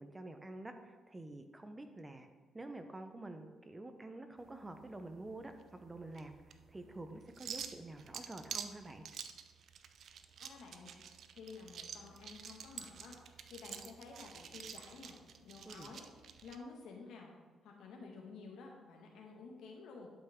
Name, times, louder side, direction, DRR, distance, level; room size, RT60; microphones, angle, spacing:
voice 1, 0.0-2.3 2.5-9.0 15.6-15.9, right 2 dB, 20° right, 7 dB, 0.8 m, -48 dB
sound 1, 4.4-16.6, right 7 dB, 65° right, 0.5 m, -49 dB
voice 2, 10.4-10.9 11.3-13.2 13.5-16.1 16.4-17.3 17.6-20.1, left 4 dB, 80° left, 0 dB, 1.8 m, -52 dB
11.5 x 5.5 x 3.7 m, 1.3 s
cardioid pair, 90°, 0 cm